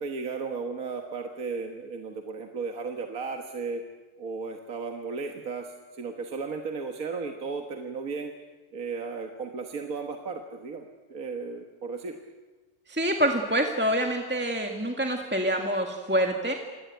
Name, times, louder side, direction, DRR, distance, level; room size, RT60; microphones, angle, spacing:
voice 1, 0.0-3.8 4.2-8.3 8.7-12.2, right 4 dB, 60° right, 4 dB, 1.8 m, -35 dB
voice 2, 12.9-16.5, equal, 5° right, 2 dB, 1.6 m, -26 dB
26.5 x 19.0 x 9.2 m, 1.3 s
omnidirectional pair, 1.7 m